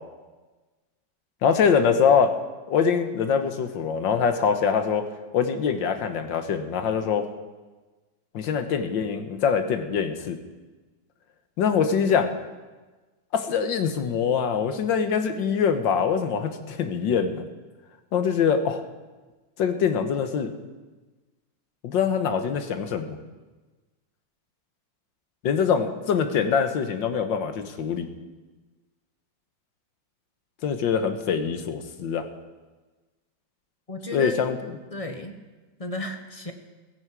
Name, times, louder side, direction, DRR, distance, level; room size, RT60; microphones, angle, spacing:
voice 1, 1.4-2.3 2.7-5.0 5.3-7.3 8.3-10.4 11.6-12.3 13.3-17.5 18.1-18.8 19.6-20.5 21.8-23.2 25.4-28.1 30.6-32.2 34.1-34.6, left 6 dB, 85° left, 7 dB, 1.8 m, -24 dB
voice 2, 33.9-34.5 34.9-35.4 35.8-36.5, left 1 dB, 30° left, 6 dB, 0.7 m, -33 dB
16.0 x 15.0 x 4.8 m, 1.3 s
omnidirectional pair, 2.0 m